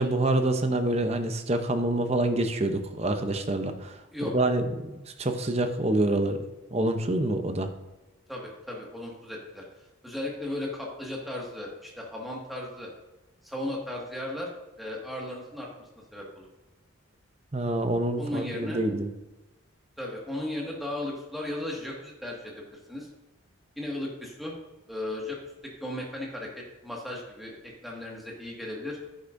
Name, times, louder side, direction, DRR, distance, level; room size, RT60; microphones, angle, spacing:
voice 1, 0.0-6.5 6.7-7.7 17.5-19.1, right 2 dB, 30° right, 7 dB, 0.7 m, -26 dB
voice 2, 8.3-9.6 10.0-12.9 13.4-14.5 14.8-15.7 16.1-16.5 18.2-18.8 20.0-23.1 23.8-24.5 24.9-25.4 25.8-26.5 26.8-29.0, left 1 dB, ahead, -3 dB, 1.8 m, -36 dB
10.0 x 9.6 x 2.6 m, 1.1 s
head